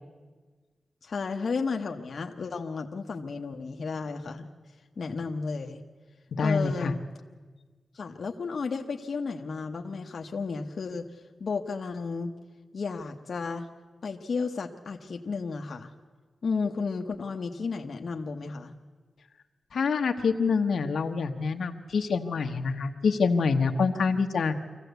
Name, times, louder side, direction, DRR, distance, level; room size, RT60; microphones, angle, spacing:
voice 1, 1.0-4.5 5.0-5.8 6.4-7.0 7.9-11.1 11.4-12.3 12.7-13.7 14.0-15.9 16.4-18.7, left 4 dB, 55° left, 3 dB, 1.0 m, -33 dB
voice 2, 6.4-6.9 19.7-24.5, left 5 dB, 75° left, 5 dB, 1.1 m, -26 dB
24.5 x 15.5 x 8.1 m, 1.4 s
wide cardioid pair, 170°, 0 cm